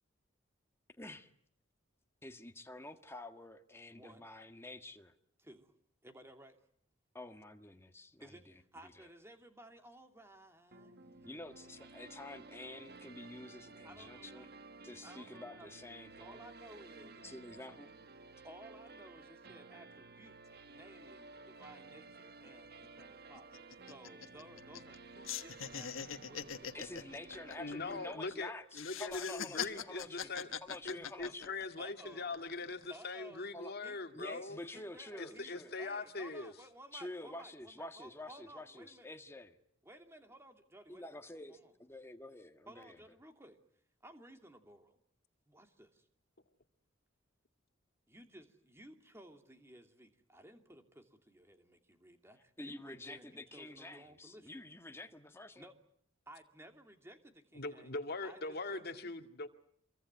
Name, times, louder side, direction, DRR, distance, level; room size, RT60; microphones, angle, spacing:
voice 1, 1.0-1.3 2.2-5.1 7.1-8.5 8.8-9.1 11.2-14.5 14.8-16.4 17.2-17.9 26.7-30.3 30.6-31.6 33.5-33.7 34.1-35.8 36.9-39.6 40.9-43.0 52.6-55.7, left 2 dB, 10° left, 1.6 m, -49 dB
voice 2, 3.9-4.3 5.4-5.7 6.0-6.6 8.2-11.5 13.8-14.5 15.0-15.7 16.2-17.2 18.4-20.4 20.7-26.9 30.2-30.8 31.8-32.3 32.9-33.5 33.8-34.0 34.3-34.4 34.7-39.1 39.8-41.7 42.7-43.6 44.0-45.0 45.5-46.1 48.1-54.6 55.6-55.7 56.3-59.1, right 1 dB, 15° right, 2.8 m, -57 dB
sound 1, 10.7-28.2, right 3 dB, 50° right, 1.3 m, -54 dB
sound 2, 22.5-22.6 22.8-23.0 23.4-25.0 25.2-28.3 28.7-31.8 32.3-32.9, left 8 dB, 75° left, 1.4 m, -43 dB
voice 3, 27.6-30.5 30.8-34.6 35.2-36.5 57.6-59.5, left 3 dB, 50° left, 2.1 m, -41 dB
27.0 x 23.5 x 9.5 m
head